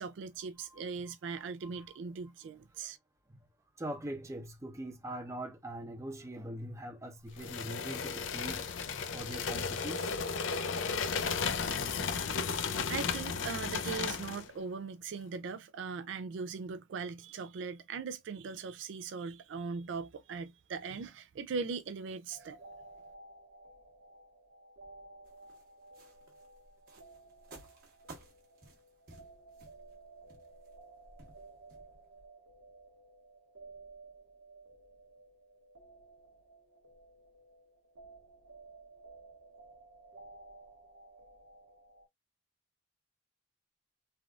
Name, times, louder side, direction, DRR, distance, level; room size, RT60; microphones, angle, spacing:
voice 1, 0.0-3.0 12.3-12.4 12.7-22.6, right 5 dB, 70° right, 0.4 m, -40 dB
voice 2, 3.8-8.7 9.1-10.1, right 1 dB, 15° right, 0.6 m, -42 dB
sound 1, 7.4-14.5, left 5 dB, 80° left, 0.5 m, -34 dB
sound 2, 22.3-42.1, right 3 dB, 85° right, 0.9 m, -55 dB
sound 3, 25.3-32.3, right 2 dB, 50° right, 1.1 m, -56 dB
3.4 x 2.4 x 2.3 m
head